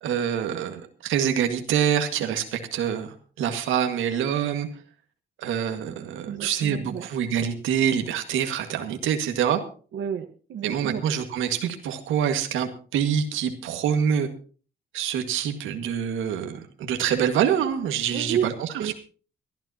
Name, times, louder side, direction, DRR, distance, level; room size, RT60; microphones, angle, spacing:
voice 1, 0.0-4.7 5.4-9.6 10.6-14.3 14.9-18.9, right 8 dB, 90° right, 6 dB, 1.8 m, -26 dB
voice 2, 6.3-7.1 9.9-11.0 18.1-18.5 18.8-18.9, right 9 dB, 65° right, 5 dB, 1.4 m, -30 dB
22.5 x 12.5 x 2.8 m, 0.39 s
cardioid pair, 90°, 20 cm